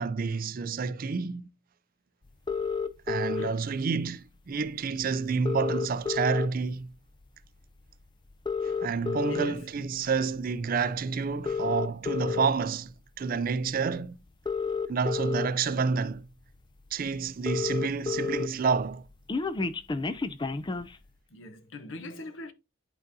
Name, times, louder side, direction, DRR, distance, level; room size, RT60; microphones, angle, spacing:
voice 1, 0.0-1.5 3.1-6.9 8.8-14.2 14.9-16.3 16.9-19.0, right 5 dB, 45° right, 0.4 m, -29 dB
sound 1, 2.5-3.5 4.7-4.8 5.0-5.1 5.3-6.7 7.2-7.5 8.3-9.5 10.2-10.4 11.3-12.5 13.7-13.8 14.3-15.5 16.1-16.2 16.5-16.6 16.9-17.0 17.2-18.5 18.8-20.9, left 5 dB, 20° left, 0.4 m, -30 dB
voice 2, 9.2-9.7 21.3-22.5, left 2 dB, 65° left, 0.9 m, -42 dB
11.0 x 3.9 x 2.7 m
head